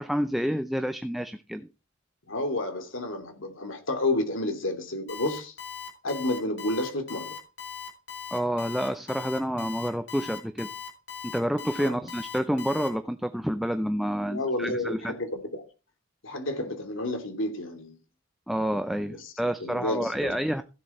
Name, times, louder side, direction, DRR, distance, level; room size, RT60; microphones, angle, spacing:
voice 1, 0.0-1.7 8.3-10.7 11.2-15.1 18.5-20.6, equal, ahead, 0.6 m, -29 dB
voice 2, 2.3-5.5 6.0-7.4 11.8-12.0 14.2-15.6 16.2-18.0 19.1-20.4, left 2 dB, 85° left, 2.7 m, -31 dB
Alarm, 5.1-12.9, left 7 dB, 55° left, 3.4 m, -39 dB
16.0 x 7.6 x 4.4 m
head